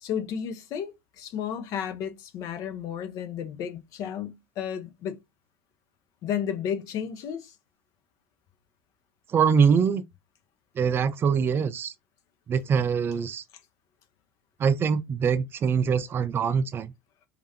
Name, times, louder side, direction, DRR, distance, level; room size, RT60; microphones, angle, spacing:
voice 1, 0.0-5.2 6.2-7.5, left 8 dB, 55° left, 1.0 m, -33 dB
voice 2, 9.3-10.0 10.8-11.9 12.5-13.4 14.6-16.9, right 6 dB, 35° right, 0.5 m, -23 dB
4.8 x 2.6 x 2.7 m
hypercardioid pair, 85°, 6 cm